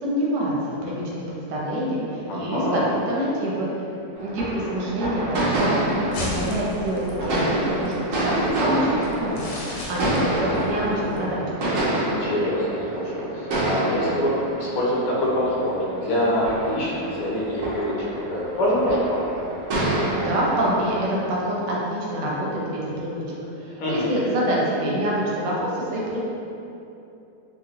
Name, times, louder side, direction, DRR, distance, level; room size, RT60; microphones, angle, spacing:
voice 1, 0.0-0.5 0.8-3.7 4.2-5.8 6.2-11.4 20.1-26.2, right 1 dB, 80° right, -5 dB, 1.3 m, -26 dB
voice 2, 2.3-2.9 12.0-19.3 23.8-24.1, equal, 65° left, -6 dB, 0.9 m, -25 dB
sound 1, 4.1-21.1, right 1 dB, 60° right, 0.9 m, -28 dB
sound 2, 5.8-11.2, left 1 dB, 85° left, 1.3 m, -36 dB
2.9 x 2.7 x 2.8 m, 2.8 s
omnidirectional pair, 1.9 m